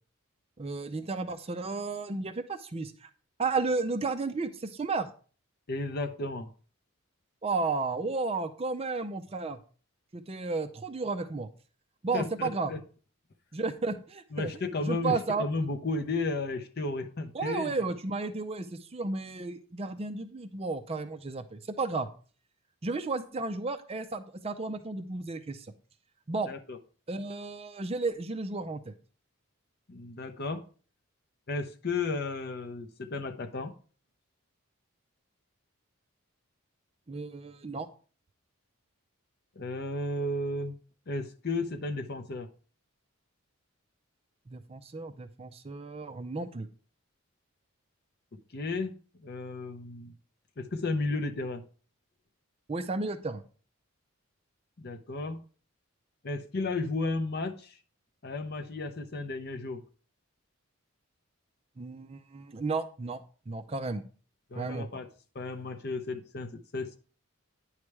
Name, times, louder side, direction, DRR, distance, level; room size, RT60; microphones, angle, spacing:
voice 1, 0.6-3.1 3.4-5.1 7.4-9.6 10.1-11.5 12.0-12.7 13.5-14.5 14.8-15.4 17.3-22.1 22.8-25.7 26.3-26.5 27.1-28.9 37.1-37.9 44.5-46.7 52.7-53.4 61.8-64.0 64.6-64.9, right 3 dB, 25° right, 10 dB, 0.4 m, -33 dB
voice 2, 5.7-6.5 12.1-12.8 14.3-17.8 26.5-26.8 29.9-30.6 31.5-33.8 39.6-40.8 41.1-42.5 48.3-50.1 50.6-51.6 54.8-55.4 56.2-57.8 58.2-59.8 64.5-65.1 65.3-67.0, left 3 dB, 50° left, 8 dB, 0.6 m, -33 dB
9.6 x 3.2 x 4.7 m, 0.40 s
head